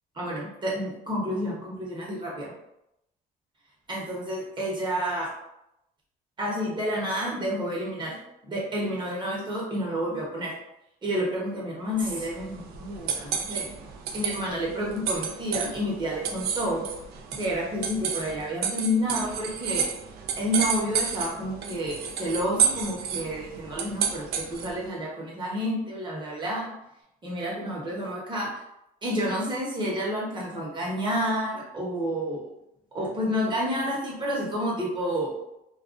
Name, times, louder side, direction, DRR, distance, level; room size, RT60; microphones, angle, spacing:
voice 1, 0.2-2.5 3.9-5.3 6.4-8.1 8.5-10.5 11.0-13.7 14.1-16.9 17.3-19.9 20.4-26.7 27.2-28.5 29.0-32.4 32.9-35.3, equal, 25° right, -4 dB, 0.9 m, -29 dB
sound 1, 12.0-24.9, right 7 dB, 70° right, 0.4 m, -31 dB
2.3 x 2.2 x 2.5 m, 0.85 s
cardioid pair, 110°, 17 cm